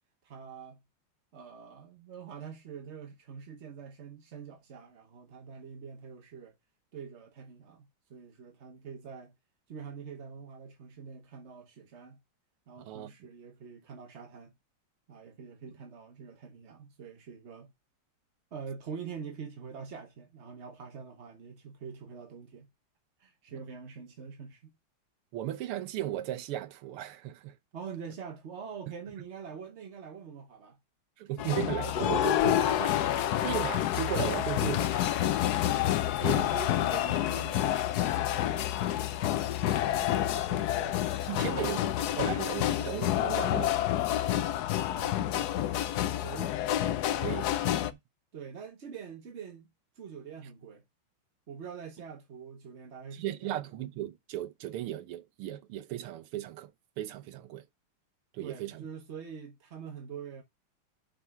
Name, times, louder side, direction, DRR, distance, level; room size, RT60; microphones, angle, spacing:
voice 1, 0.2-0.8 1.3-6.5 6.9-9.3 9.7-12.2 12.7-14.5 15.1-17.7 18.5-22.7 23.2-24.7 27.7-30.8 36.2-38.7 39.6-41.1 41.4-41.9 44.9-45.7 46.2-46.6 47.2-47.4 47.7-47.9 48.3-49.7 49.9-50.8 51.5-53.6 58.4-60.4, right 6 dB, 50° right, 0.8 m, -45 dB
voice 2, 12.8-13.1 25.3-27.6 31.2-35.1 36.2-36.5 41.3-41.8 42.2-43.9 47.2-47.5 47.8-48.0 53.1-57.7 58.3-58.9, right 13 dB, 90° right, 1.7 m, -36 dB
sound 1, 31.4-47.9, left 12 dB, 80° left, 0.8 m, -28 dB
5.9 x 5.5 x 5.5 m
omnidirectional pair, 2.4 m